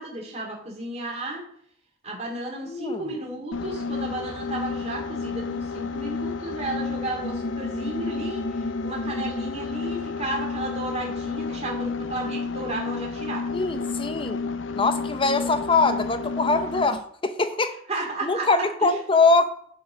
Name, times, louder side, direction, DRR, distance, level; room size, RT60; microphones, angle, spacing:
voice 1, 0.0-1.4 2.0-13.4 15.4-15.5 17.9-18.5 18.8-19.0, right 2 dB, 35° right, -1 dB, 2.8 m, -33 dB
voice 2, 2.6-3.0 13.5-14.4 14.7-17.7 18.2-19.5, left 3 dB, 30° left, 10 dB, 0.8 m, -23 dB
sound 1, 3.5-17.0, left 4 dB, 80° left, 0.5 m, -31 dB
11.0 x 4.6 x 5.2 m, 0.62 s
head